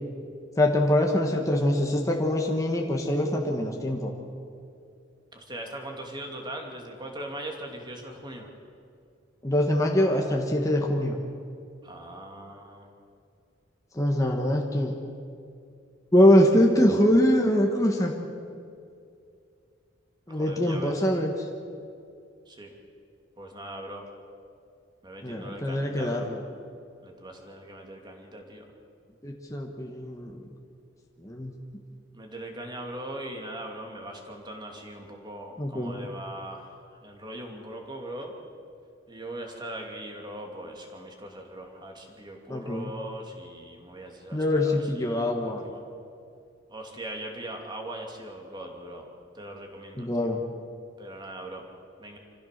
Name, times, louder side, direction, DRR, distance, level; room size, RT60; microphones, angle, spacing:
voice 1, 0.6-4.1 9.4-11.1 13.9-14.9 16.1-18.1 20.3-21.5 25.2-26.4 29.2-30.4 31.2-31.5 35.6-36.0 42.5-42.9 44.3-45.6 50.0-50.4, left 1 dB, 15° left, 0 dB, 1.5 m, -23 dB
voice 2, 5.3-8.5 11.8-12.9 20.3-21.0 22.5-22.7 23.4-24.1 25.0-26.3 27.0-28.6 32.1-38.3 39.1-45.8 46.7-49.1 49.3-50.3 51.0-51.6 52.0-52.2, right 1 dB, 25° right, 2 dB, 2.7 m, -40 dB
26.5 x 15.0 x 6.8 m, 2.5 s
head